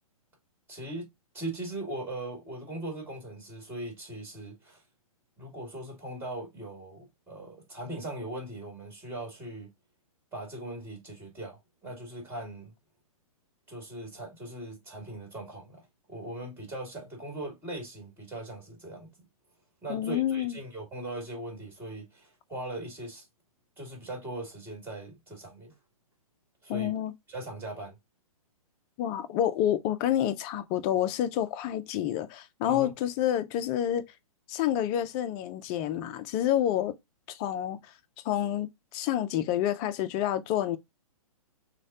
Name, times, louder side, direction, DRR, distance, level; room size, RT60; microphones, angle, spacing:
voice 1, 0.7-1.1 1.3-4.8 5.4-9.7 10.3-12.7 13.7-19.1 19.8-23.3 23.8-25.7 26.6-26.9 27.3-28.0 32.7-32.9, right 1 dB, 10° right, 1.9 m, -40 dB
voice 2, 19.9-20.6 26.7-27.1 29.0-34.0 34.5-37.0 37.3-37.8 38.2-40.8, left 11 dB, 25° left, 0.4 m, -28 dB
6.2 x 2.2 x 2.7 m
hypercardioid pair, 125°, 19 cm